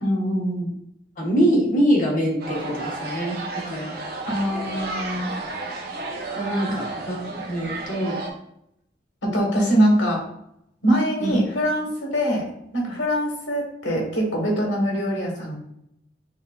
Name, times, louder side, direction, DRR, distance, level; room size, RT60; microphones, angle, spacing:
voice 1, 0.0-0.7 4.3-5.3 9.2-10.2 10.8-12.5 12.7-15.6, equal, 85° left, 0 dB, 1.2 m, -23 dB
voice 2, 1.2-3.4 3.7-4.0 6.4-8.2 11.2-11.3, equal, 45° left, -4 dB, 1.2 m, -23 dB
sound 1, 2.4-8.3, right 2 dB, 55° right, 0.6 m, -32 dB
6.0 x 2.5 x 2.3 m, 0.76 s
head